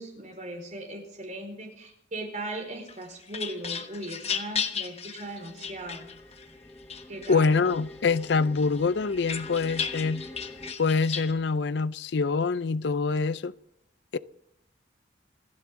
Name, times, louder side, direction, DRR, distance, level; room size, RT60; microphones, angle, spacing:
voice 1, 0.0-6.1 7.1-7.5, right 1 dB, 40° right, 4.6 m, -38 dB
sound 1, 2.9-6.4 6.9-7.8 8.2-11.3, left 6 dB, 35° left, 1.2 m, -35 dB
sound 2, 5.2-10.8, left 1 dB, 10° left, 0.9 m, -46 dB
voice 2, 7.3-10.2 10.8-13.5 14.1-14.2, left 4 dB, 65° left, 0.5 m, -25 dB
28.0 x 10.5 x 3.7 m
head